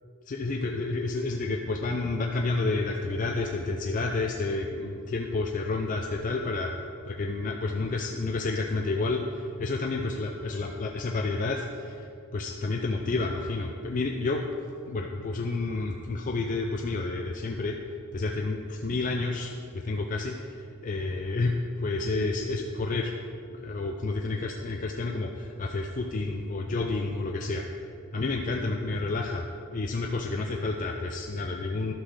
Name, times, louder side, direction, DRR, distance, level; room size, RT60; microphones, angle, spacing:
voice 1, 0.3-6.7 7.0-12.1 12.3-14.4 14.9-17.8 18.1-23.1 23.5-27.6 28.1-29.5 29.7-31.9, left 3 dB, 35° left, 2 dB, 0.4 m, -30 dB
11.5 x 3.9 x 6.2 m, 2.6 s
head